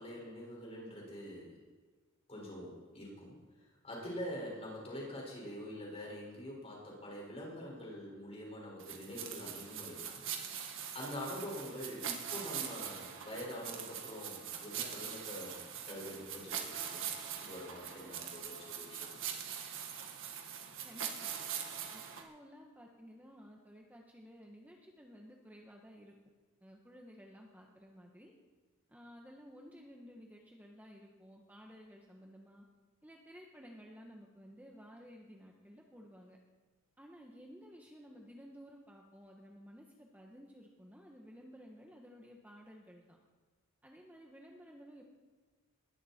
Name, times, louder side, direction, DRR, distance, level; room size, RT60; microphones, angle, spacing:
voice 1, 0.0-1.6 2.3-3.4 3.8-15.6 15.9-17.1 17.4-19.1, equal, 30° left, -3 dB, 5.9 m, -45 dB
sound 1, 8.8-22.2, right 8 dB, 65° right, 1.7 m, -42 dB
voice 2, 20.8-21.4 21.9-26.1 26.6-28.3 28.9-32.7 33.0-36.4 37.0-43.2 43.8-45.0, equal, 10° right, 0 dB, 1.4 m, -55 dB
20.5 x 14.0 x 4.5 m, 1.4 s
head